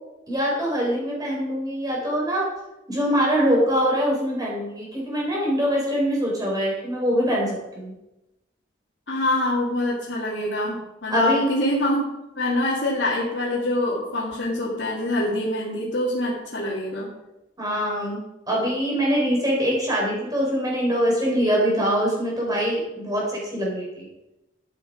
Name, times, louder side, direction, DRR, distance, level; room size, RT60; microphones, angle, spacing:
voice 1, 0.3-2.5 2.9-7.9 11.1-11.5 17.6-18.2 18.5-24.1, equal, 20° right, -4 dB, 4.8 m, -23 dB
voice 2, 9.1-17.1, left 1 dB, 75° left, -7 dB, 2.5 m, -25 dB
12.5 x 8.0 x 5.1 m, 0.95 s
head